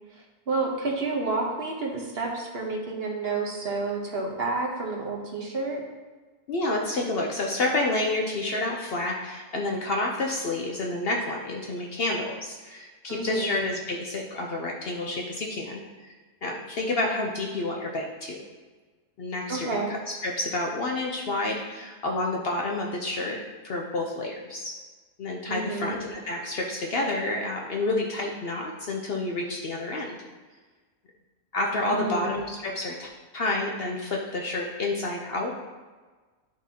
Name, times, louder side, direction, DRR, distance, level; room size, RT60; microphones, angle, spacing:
voice 1, 0.1-5.8 13.1-13.6 19.5-19.9 25.5-25.9 31.9-32.3, right 3 dB, 50° right, 0 dB, 1.0 m, -30 dB
voice 2, 6.5-16.1 16.4-18.4 19.2-19.8 20.2-23.4 23.6-24.7 25.2-30.2 31.5-35.5, left 2 dB, 55° left, 0 dB, 0.7 m, -29 dB
10.0 x 3.9 x 2.8 m, 1.3 s
omnidirectional pair, 1.4 m